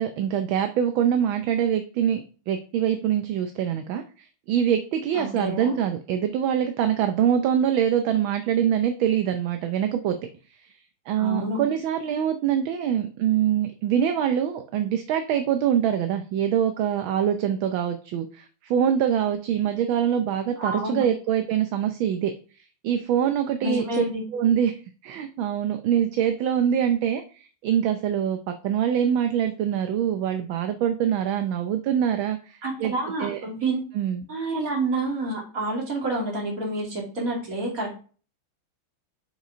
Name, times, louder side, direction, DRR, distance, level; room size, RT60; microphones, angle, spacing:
voice 1, 0.0-10.2 10.6-10.7 11.1-22.3 22.8-24.0 24.3-24.8 25.0-32.9 33.2-33.4 33.9-34.2, right 9 dB, 75° right, 7 dB, 1.5 m, -24 dB
voice 2, 5.1-5.7 11.2-11.6 20.6-21.0 23.6-24.2 32.6-33.8 34.3-38.0, right 2 dB, 40° right, -2 dB, 2.9 m, -28 dB
6.4 x 5.2 x 4.9 m, 0.38 s
omnidirectional pair, 2.4 m